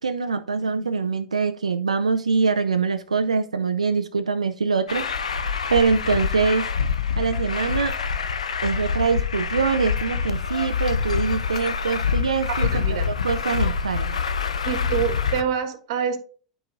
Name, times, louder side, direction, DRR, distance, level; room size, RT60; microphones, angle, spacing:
voice 1, 0.0-5.3 5.7-6.7 7.2-7.9 8.6-14.2, right 5 dB, 90° right, 9 dB, 0.4 m, -24 dB
Truck, 4.9-15.4, left 6 dB, 85° left, 0.6 m, -26 dB
voice 2, 12.5-13.1 14.6-16.2, right 8 dB, 65° right, 7 dB, 1.5 m, -26 dB
12.0 x 4.8 x 2.5 m, 0.43 s
hypercardioid pair, 85°, 3 cm